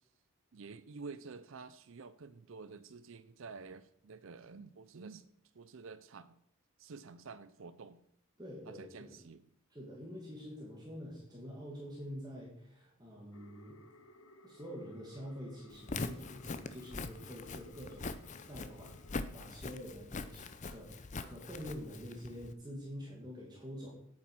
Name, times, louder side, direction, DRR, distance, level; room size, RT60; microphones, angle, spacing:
voice 1, 0.5-5.3 5.5-6.4 6.8-8.0 8.7-9.4, right 4 dB, 65° right, 13 dB, 0.5 m, -50 dB
voice 2, 8.4-9.2 9.7-13.8 14.4-19.0 19.3-23.9, equal, 20° right, -4 dB, 2.2 m, -47 dB
sound 1, 13.3-19.3, left 1 dB, 90° left, 1.1 m, -60 dB
Walk footsteps, 15.7-22.5, left 3 dB, 35° left, 0.6 m, -43 dB
8.6 x 8.6 x 6.2 m, 0.70 s
head